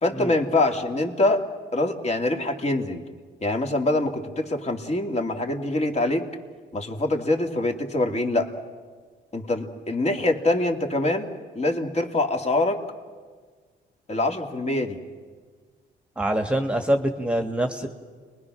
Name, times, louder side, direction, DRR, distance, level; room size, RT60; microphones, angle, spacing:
voice 1, 0.0-1.4 1.7-3.0 3.4-6.3 6.7-8.5 9.3-11.3 11.6-12.8 14.1-15.0, left 2 dB, 35° left, 3 dB, 2.6 m, -24 dB
voice 2, 16.2-17.9, right 1 dB, 5° right, 5 dB, 1.6 m, -25 dB
30.0 x 22.0 x 6.3 m, 1.5 s
cardioid pair, 90°, 20 cm